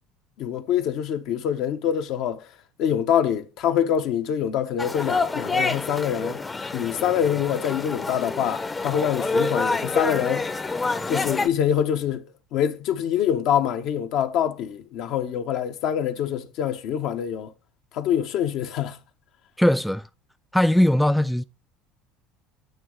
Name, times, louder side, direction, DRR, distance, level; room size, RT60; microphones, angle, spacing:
voice 1, 0.4-2.4 2.8-6.4 6.7-10.5 11.1-12.2 12.5-17.5 17.9-19.0, left 9 dB, 65° left, 0.9 m, -25 dB
sound 1, 4.8-11.5, left 3 dB, 20° left, 0.7 m, -27 dB
voice 2, 19.6-20.1 20.5-21.4, left 1 dB, 5° left, 0.3 m, -19 dB
9.1 x 3.0 x 6.5 m
hypercardioid pair, 75°, 0 cm